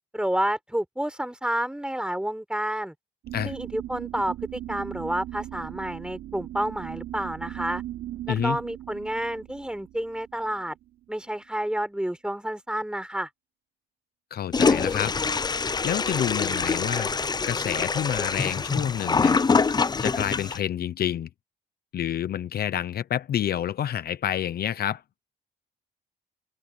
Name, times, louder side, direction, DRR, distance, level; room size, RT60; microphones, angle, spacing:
voice 1, 0.1-2.9 3.4-7.8 8.3-10.8 11.1-13.3, right 1 dB, 5° right, 5.2 m, -29 dB
sound 1, 3.2-11.2, right 14 dB, 90° right, 3.7 m, -38 dB
voice 2, 14.3-15.6 15.8-17.1 17.4-19.4 20.0-21.3 21.9-25.0, left 10 dB, 60° left, 0.9 m, -28 dB
Toilet flush, 14.5-20.6, left 4 dB, 25° left, 0.6 m, -25 dB
cardioid pair, 95°, 18 cm